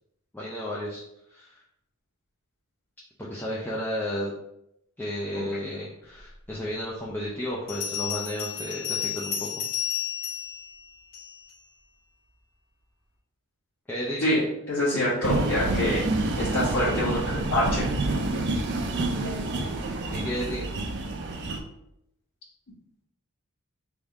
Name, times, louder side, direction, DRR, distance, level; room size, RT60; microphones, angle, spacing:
voice 1, 0.3-1.0 1.3-1.6 3.2-4.3 5.0-9.5 13.9-14.2 20.1-20.6, equal, 10° left, -5 dB, 0.5 m, -32 dB
Bell, 6.5-6.6 7.7-11.6, left 9 dB, 60° left, 1.6 m, -32 dB
voice 2, 14.2-16.1 16.4-17.9, left 1 dB, 75° left, -11 dB, 1.5 m, -26 dB
sound 1, 15.2-21.6, right 2 dB, 55° right, 0.5 m, -28 dB
3.5 x 2.7 x 4.6 m, 0.81 s
head